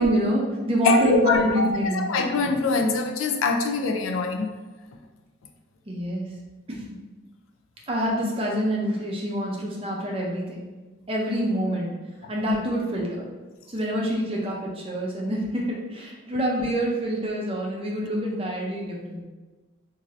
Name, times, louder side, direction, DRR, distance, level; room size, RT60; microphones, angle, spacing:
voice 1, 0.0-2.1 5.9-6.3 6.7-6.8 7.9-10.7 11.1-11.9 12.3-13.3 13.7-19.2, equal, 25° right, -2 dB, 0.5 m, -26 dB
voice 2, 0.8-4.5, left 3 dB, 75° left, 4 dB, 0.4 m, -24 dB
2.6 x 2.6 x 3.1 m, 1.3 s
head